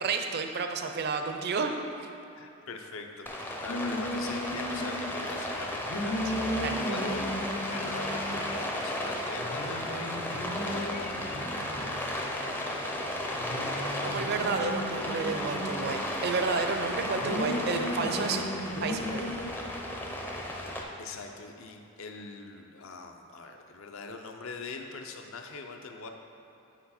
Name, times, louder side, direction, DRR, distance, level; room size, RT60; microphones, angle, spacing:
voice 1, 0.0-1.7 6.6-6.7 14.0-18.5 18.8-19.2, right 4 dB, 45° right, 5 dB, 0.4 m, -31 dB
voice 2, 2.3-7.3 7.6-11.2 21.0-26.1, left 3 dB, 65° left, 4 dB, 0.6 m, -42 dB
Rain, 3.3-20.8, left 1 dB, 10° left, 0.4 m, -34 dB
sound 1, 3.7-5.3 5.9-8.8 9.0-9.1 9.4-12.8 13.4-16.1 17.2-19.4, equal, 90° left, 1.0 m, -36 dB
8.2 x 4.7 x 4.3 m, 3.0 s
head